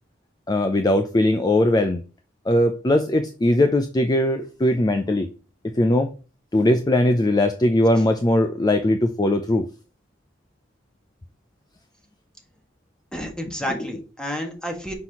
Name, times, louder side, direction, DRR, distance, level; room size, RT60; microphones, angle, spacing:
voice 1, 0.5-2.0 2.5-5.3 5.8-6.1 6.5-9.6, left 1 dB, 20° left, 0.5 m, -20 dB
voice 2, 13.1-14.9, equal, 5° left, 1.6 m, -30 dB
5.9 x 5.7 x 2.9 m
head